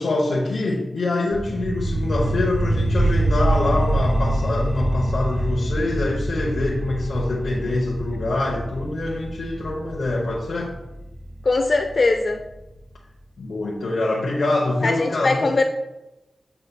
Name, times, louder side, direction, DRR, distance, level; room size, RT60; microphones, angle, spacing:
voice 1, 0.0-10.8 13.4-15.5, left 2 dB, 85° left, -3 dB, 0.8 m, -25 dB
sound 1, 1.3-12.3, right 1 dB, 20° right, 2.1 m, -25 dB
voice 2, 11.4-12.4 14.8-15.6, left 3 dB, 50° left, 4 dB, 0.4 m, -20 dB
7.9 x 5.5 x 2.2 m, 0.97 s
wide cardioid pair, 115°, 0 cm